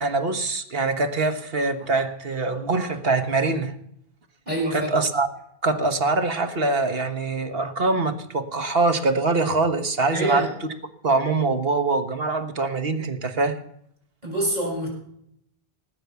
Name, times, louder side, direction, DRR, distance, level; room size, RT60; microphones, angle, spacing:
voice 1, 0.0-3.7 4.7-5.3 5.6-10.5 11.0-13.6, right 3 dB, 70° right, 7 dB, 1.6 m, -23 dB
voice 2, 4.5-4.9 10.1-10.5 14.2-14.9, right 1 dB, 45° right, -2 dB, 6.0 m, -25 dB
19.0 x 9.0 x 6.9 m, 0.73 s
omnidirectional pair, 1.0 m